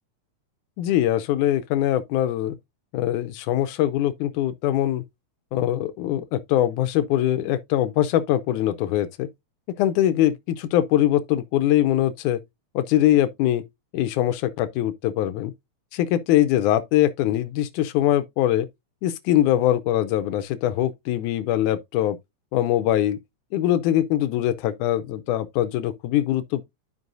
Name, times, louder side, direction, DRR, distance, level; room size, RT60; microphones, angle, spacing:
voice 1, 0.8-2.6 2.9-5.0 5.5-9.3 9.8-12.4 12.8-13.6 13.9-15.5 15.9-18.7 19.0-22.2 22.5-23.2 23.5-26.7, left 12 dB, 90° left, 2.1 m, -22 dB
11.0 x 5.3 x 2.5 m
omnidirectional pair, 3.4 m